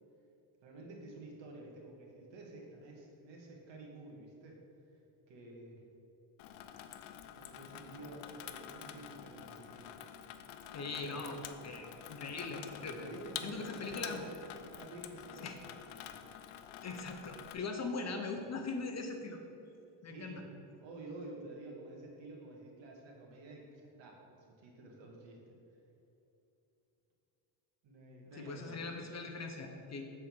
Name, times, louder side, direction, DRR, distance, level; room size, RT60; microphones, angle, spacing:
voice 1, 0.6-4.6 5.3-5.8 7.3-9.9 11.1-11.2 13.0-14.4 14.7-16.2 20.0-20.4 20.8-25.6 27.8-28.8, right 2 dB, 65° right, -1 dB, 1.8 m, -50 dB
Water tap faucet / Sink (filling or washing), 6.4-17.5, left 10 dB, 85° left, 0.6 m, -48 dB
voice 2, 10.7-11.4 11.6-13.0 13.4-14.2 15.4-15.5 16.8-19.4 20.0-20.4 28.4-30.0, left 3 dB, 35° left, 4 dB, 0.7 m, -41 dB
7.0 x 4.3 x 6.1 m, 2.8 s
cardioid pair, 110°, 48 cm